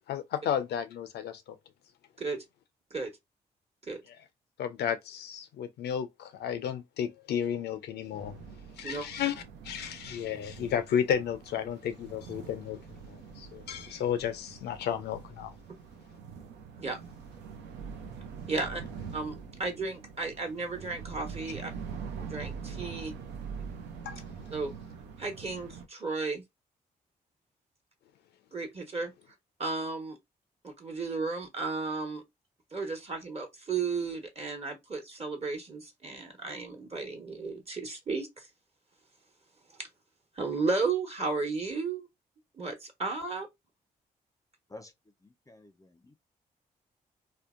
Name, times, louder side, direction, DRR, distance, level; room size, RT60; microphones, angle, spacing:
voice 1, 0.1-1.4 4.1-4.2 4.6-8.4 8.8-9.3 9.6-12.8 13.1-15.5 24.1-24.2, left 8 dB, 70° left, 0.4 m, -33 dB
sound 1, 8.1-25.9, right 6 dB, 80° right, 0.5 m, -44 dB
voice 2, 18.5-18.8 19.1-21.7 22.2-23.2 24.5-24.7 25.2-26.4 28.5-29.1 29.6-30.2 30.6-32.2 32.7-38.5 39.8-39.9 40.4-42.1 42.5-43.5, right 4 dB, 35° right, 1.1 m, -34 dB
voice 3, 45.2-46.1, left 2 dB, 20° left, 0.5 m, -50 dB
2.7 x 2.1 x 2.4 m
supercardioid pair, 45°, 18 cm